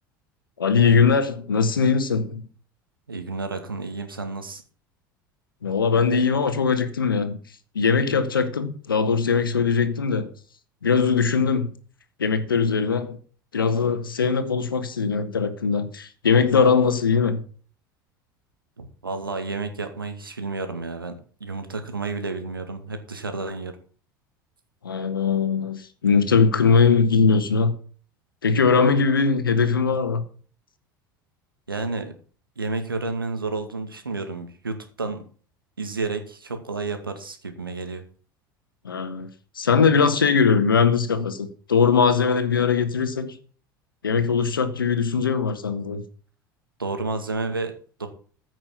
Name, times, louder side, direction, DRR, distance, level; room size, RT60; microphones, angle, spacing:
voice 1, 0.6-2.4 5.6-7.4 7.7-10.3 10.8-11.7 12.2-13.2 13.5-17.4 24.8-27.7 28.4-30.2 38.8-39.3 39.5-43.4 44.0-46.0, left 5 dB, 85° left, 1.5 m, -21 dB
voice 2, 3.1-4.6 18.8-23.7 31.7-32.1 32.6-35.2 35.8-38.0 46.8-47.7 48.0-48.1, right 3 dB, 90° right, 2.1 m, -31 dB
14.5 x 6.2 x 6.0 m
figure-of-eight pair, 75°, 11 cm